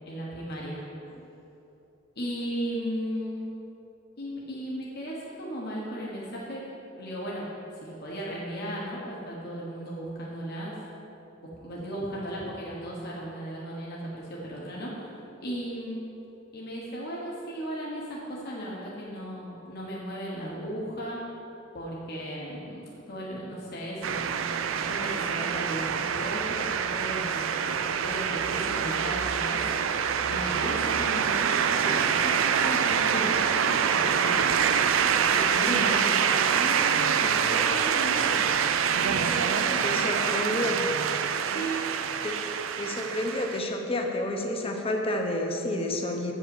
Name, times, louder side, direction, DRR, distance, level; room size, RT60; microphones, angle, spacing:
voice 1, 0.1-0.8 2.1-3.5 4.2-6.6 7.0-7.5 7.8-10.7 11.4-14.9 15.4-16.0 16.5-21.2 21.7-24.4 24.7-29.8 30.3-34.4 35.0-38.4 38.9-40.2 41.5-41.9, equal, 55° left, -5 dB, 1.3 m, -36 dB
sound 1, 24.0-43.6, right 7 dB, 85° right, 0.4 m, -26 dB
voice 2, 39.5-40.9 42.2-42.5 42.8-46.3, left 1 dB, 30° left, 2 dB, 0.9 m, -30 dB
7.3 x 5.4 x 7.2 m, 2.9 s
head